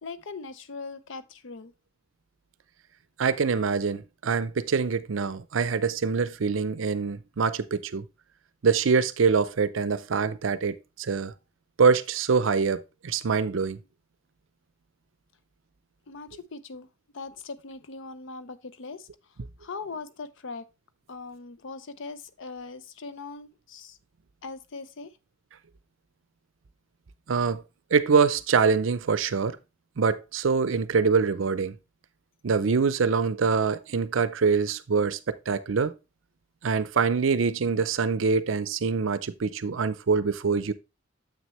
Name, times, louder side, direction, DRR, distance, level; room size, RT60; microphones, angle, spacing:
voice 1, 0.0-1.7 16.1-16.9 17.1-19.1 19.6-20.7 21.1-24.0 24.4-25.1, left 4 dB, 65° left, 0.6 m, -40 dB
voice 2, 3.2-8.0 8.6-11.3 11.8-13.8 27.3-27.6 27.9-29.6 30.0-31.7 32.4-35.9 36.6-40.7, right 5 dB, 70° right, 0.5 m, -24 dB
7.2 x 6.3 x 3.1 m
head